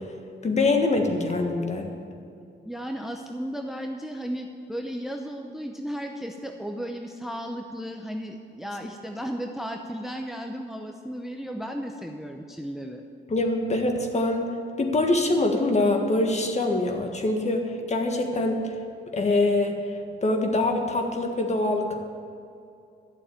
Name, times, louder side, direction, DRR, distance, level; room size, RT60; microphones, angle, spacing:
voice 1, 0.4-1.9 13.3-14.5 14.8-18.8 19.1-19.8 20.2-22.0, left 2 dB, 35° left, 3 dB, 1.6 m, -24 dB
voice 2, 2.6-13.0, equal, ahead, 3 dB, 0.7 m, -34 dB
12.0 x 7.1 x 8.8 m, 2.5 s
cardioid pair, 115°, 19 cm